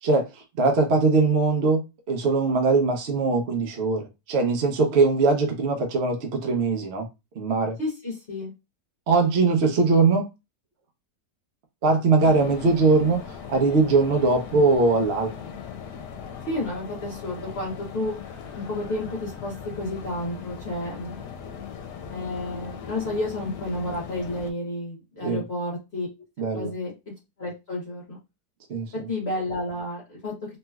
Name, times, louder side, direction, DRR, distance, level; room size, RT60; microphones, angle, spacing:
voice 1, 0.0-7.1 7.4-7.8 9.1-10.3 11.8-15.3 25.2-25.4 26.4-26.7 28.7-28.9, right 3 dB, 60° right, 0.7 m, -21 dB
voice 2, 7.8-8.5 16.5-18.1 18.5-21.3 22.1-26.1 26.5-26.9 27.4-28.2 28.9-30.3, left 1 dB, 45° left, 1.3 m, -31 dB
sound 1, 12.2-24.5, left 7 dB, 85° left, 1.2 m, -39 dB
3.2 x 2.9 x 2.3 m
omnidirectional pair, 1.8 m